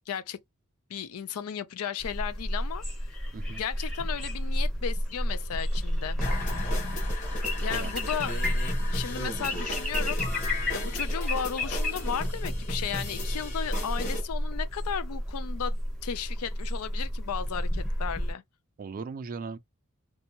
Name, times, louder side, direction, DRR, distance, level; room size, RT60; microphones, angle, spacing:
voice 1, 0.1-0.4 0.9-2.8 3.6-6.2 7.6-8.3 8.9-10.2 10.7-18.4, left 8 dB, 75° left, 0.4 m, -35 dB
sound 1, 2.0-18.3, equal, 5° left, 0.7 m, -31 dB
sound 2, 6.2-14.2, left 1 dB, 35° left, 1.1 m, -36 dB
voice 2, 18.8-19.6, right 4 dB, 40° right, 0.3 m, -38 dB
2.6 x 2.2 x 2.8 m
head